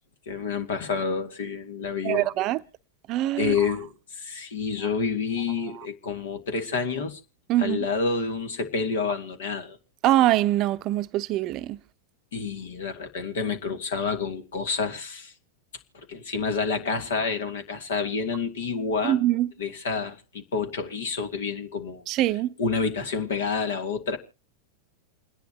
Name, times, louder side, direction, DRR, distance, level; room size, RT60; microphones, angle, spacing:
voice 1, 0.3-2.3 3.4-7.2 7.6-9.8 12.3-15.3 16.1-19.2 19.6-22.0 22.6-24.2, left 5 dB, 75° left, 2.5 m, -29 dB
voice 2, 2.0-2.6 3.1-3.6 5.8-5.9 7.5-7.9 10.0-11.8 19.0-19.5 22.1-22.5, right 14 dB, 45° right, 0.6 m, -23 dB
29.0 x 10.5 x 2.9 m
hypercardioid pair, 100°, 0 cm